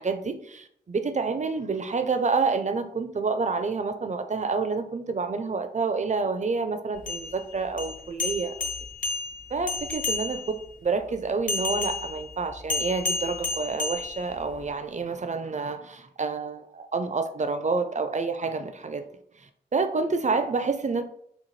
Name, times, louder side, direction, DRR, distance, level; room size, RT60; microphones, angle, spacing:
voice 1, 0.0-8.5 9.5-19.1 19.7-21.0, right 4 dB, 45° right, 8 dB, 0.4 m, -28 dB
sound 1, 7.0-10.6 11.5-14.7, left 3 dB, 50° left, 0.4 m, -31 dB
4.1 x 2.2 x 3.1 m, 0.68 s
wide cardioid pair, 80°, 18 cm